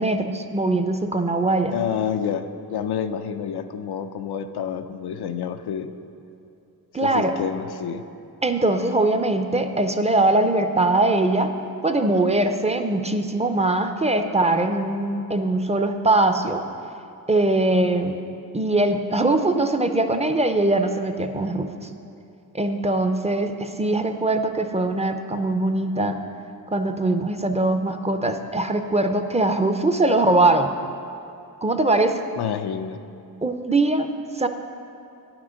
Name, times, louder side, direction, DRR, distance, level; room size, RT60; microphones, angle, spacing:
voice 1, 0.0-1.8 6.9-7.3 8.4-11.5 11.8-16.6 17.3-18.2 18.5-21.7 22.5-26.2 26.7-30.7 31.6-32.2 33.4-34.1 34.4-34.5, right 2 dB, 20° right, 7 dB, 0.5 m, -21 dB
voice 2, 1.7-5.9 7.0-8.0 32.4-33.0, left 8 dB, 90° left, 8 dB, 0.5 m, -28 dB
9.5 x 6.0 x 6.3 m, 2.7 s
wide cardioid pair, 95°, 37 cm